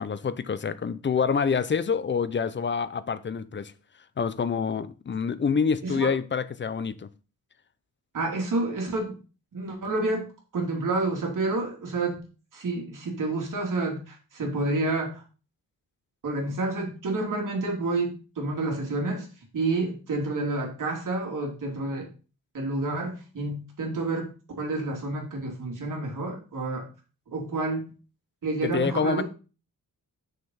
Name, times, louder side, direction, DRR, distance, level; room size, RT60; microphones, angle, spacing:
voice 1, 0.0-3.7 4.2-7.1 28.6-29.2, left 6 dB, 35° left, 0.6 m, -27 dB
voice 2, 5.8-6.2 8.1-9.2 9.5-10.3 10.5-12.2 12.5-15.2 16.2-19.3 19.5-22.1 22.5-26.9 27.3-27.9 28.4-29.2, right 2 dB, 60° right, 3.2 m, -29 dB
6.8 x 6.5 x 5.6 m
wide cardioid pair, 170°, 36 cm